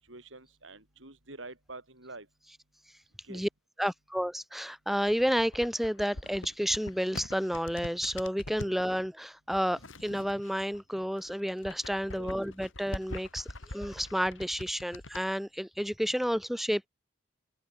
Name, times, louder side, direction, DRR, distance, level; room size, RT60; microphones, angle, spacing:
voice 1, 0.0-2.3 3.2-3.4 8.6-8.7 12.1-12.3, right 2 dB, 80° right, 6.1 m, -47 dB
voice 2, 3.8-16.9, equal, ahead, 2.3 m, -31 dB
sound 1, 4.9-8.8 9.5-10.8 11.1-15.2, left 1 dB, 85° left, 4.3 m, -44 dB
head